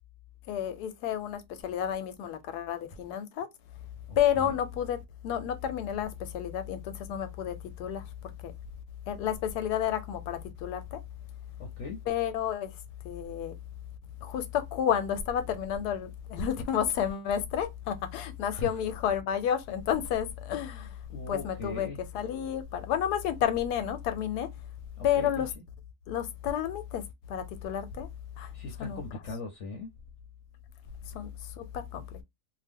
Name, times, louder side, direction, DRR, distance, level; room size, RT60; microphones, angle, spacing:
voice 1, 0.5-3.5 4.2-5.0 5.2-8.5 9.1-11.0 12.1-12.7 13.0-13.5 14.2-21.0 21.3-21.9 22.1-24.5 25.0-25.5 26.1-28.1 28.4-28.5 28.8-29.0 31.1-31.3 31.6-32.2, left 9 dB, 90° left, 1.2 m, -31 dB
voice 2, 4.1-4.5 11.6-12.0 18.5-18.8 21.1-22.0 25.0-25.4 28.5-29.9, left 3 dB, 60° left, 0.8 m, -39 dB
2.8 x 2.1 x 3.5 m
omnidirectional pair, 1.7 m